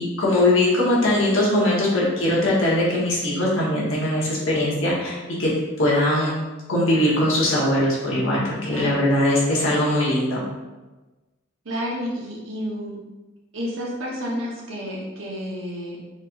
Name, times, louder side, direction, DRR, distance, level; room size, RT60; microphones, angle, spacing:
voice 1, 0.0-5.5 5.8-6.3 6.7-10.5, left 1 dB, 80° left, -5 dB, 1.3 m, -21 dB
voice 2, 8.6-9.1 11.6-12.9 13.5-16.0, equal, 90° right, -3 dB, 1.1 m, -30 dB
4.2 x 3.2 x 2.5 m, 1.2 s
head